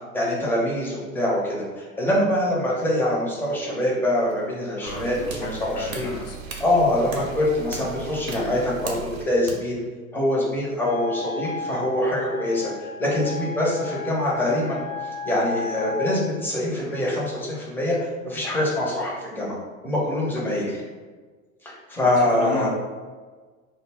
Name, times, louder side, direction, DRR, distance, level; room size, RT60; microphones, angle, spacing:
voice 1, 0.1-6.1 6.6-9.8 10.1-14.8 15.2-19.6 19.8-20.8 21.6-22.7, left 1 dB, 5° left, -5 dB, 0.5 m, -24 dB
sound 1, 4.2-9.5, right 2 dB, 85° right, 0.6 m, -39 dB
voice 2, 4.8-6.4 22.1-22.7, left 3 dB, 45° left, -1 dB, 0.7 m, -33 dB
sound 2, 4.9-9.3, right 8 dB, 40° right, 0.6 m, -40 dB
Wind instrument woodwind instrument, 10.8-16.2, left 3 dB, 90° left, 0.9 m, -34 dB
2.1 x 2.0 x 3.4 m, 1.4 s
hypercardioid pair, 85°, 43 cm